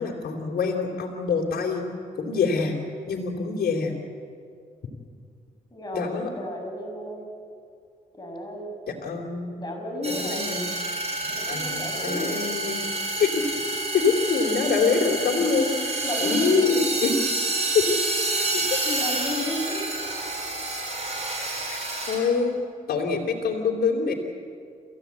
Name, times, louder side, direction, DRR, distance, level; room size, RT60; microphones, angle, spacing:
voice 1, 0.0-1.8 2.2-2.8 3.1-3.9 5.9-6.3 9.0-9.5 10.0-10.7 11.5-12.8 13.2-13.4 13.9-17.1 17.7-18.0 18.3-18.6 21.7-22.5 22.9-24.1, left 5 dB, 70° left, 0 dB, 3.2 m, -25 dB
voice 2, 5.7-7.3 8.1-8.7 9.6-10.5 11.3-12.4 12.8-12.9 16.0-16.7 18.8-19.8, left 1 dB, 25° left, 1 dB, 6.5 m, -32 dB
sound 1, 10.0-22.2, right 2 dB, 40° right, 7.2 m, -29 dB
28.0 x 15.0 x 8.5 m, 2.4 s
cardioid pair, 65°, 16 cm